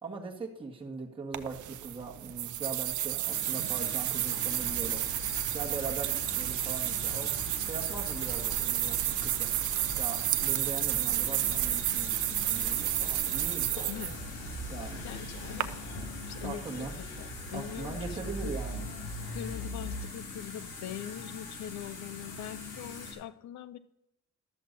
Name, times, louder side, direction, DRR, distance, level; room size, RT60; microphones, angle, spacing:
voice 1, 0.0-5.1 5.5-7.4 7.7-9.5 10.0-13.9 14.7-15.0 16.4-16.9 17.5-18.8, right 4 dB, 15° right, -3 dB, 1.8 m, -40 dB
sound 1, 1.3-15.6, right 14 dB, 75° right, 0.7 m, -31 dB
sound 2, 3.3-23.1, left 4 dB, 90° left, 2.8 m, -43 dB
sound 3, 4.6-20.0, equal, 15° left, 3.5 m, -43 dB
voice 2, 13.8-14.2 14.8-15.9 16.3-18.5 19.3-23.8, left 11 dB, 65° left, 14 dB, 0.7 m, -42 dB
12.5 x 7.5 x 4.1 m, 0.81 s
cardioid pair, 90°, 30 cm